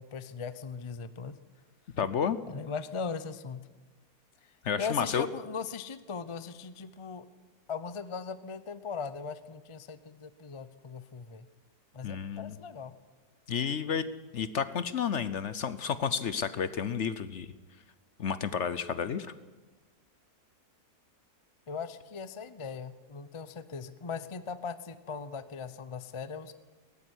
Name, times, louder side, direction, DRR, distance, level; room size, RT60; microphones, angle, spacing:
voice 1, 0.0-1.4 2.4-3.7 4.4-4.5 4.8-7.3 7.7-11.5 11.9-12.9 21.7-26.5, left 5 dB, 30° left, 13 dB, 0.5 m, -39 dB
voice 2, 2.0-2.4 4.6-5.3 12.0-12.6 13.5-14.0 14.3-17.5 18.2-19.3, left 7 dB, 55° left, 14 dB, 0.9 m, -31 dB
18.5 x 14.0 x 10.0 m, 1.3 s
omnidirectional pair, 1.7 m